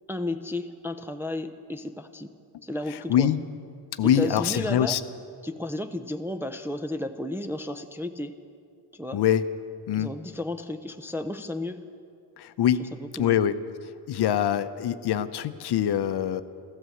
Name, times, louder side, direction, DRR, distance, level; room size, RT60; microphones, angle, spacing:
voice 1, 0.1-2.3 2.6-3.3 4.0-5.0 5.4-8.3 8.9-9.2 10.0-11.9 12.8-13.4, left 1 dB, 5° right, 6 dB, 0.5 m, -33 dB
voice 2, 4.0-5.0 9.1-9.4 9.9-10.1 12.4-12.8 13.2-13.5 14.1-16.4, left 10 dB, 55° left, 12 dB, 0.7 m, -24 dB
14.5 x 12.5 x 7.8 m, 2.4 s
cardioid pair, 105°, 49 cm